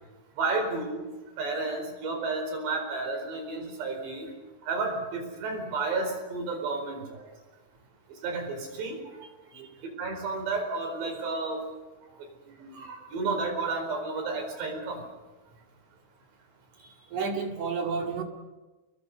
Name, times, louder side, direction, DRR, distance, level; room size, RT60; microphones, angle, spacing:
voice 1, 0.4-1.0 1.4-4.3 4.6-7.2 8.2-9.0 9.8-11.6 12.5-15.0, right 3 dB, 80° right, 4 dB, 6.8 m, -32 dB
voice 2, 16.8-18.2, right 5 dB, 50° right, 2 dB, 3.2 m, -31 dB
29.5 x 21.5 x 5.5 m, 1.2 s
omnidirectional pair, 4.8 m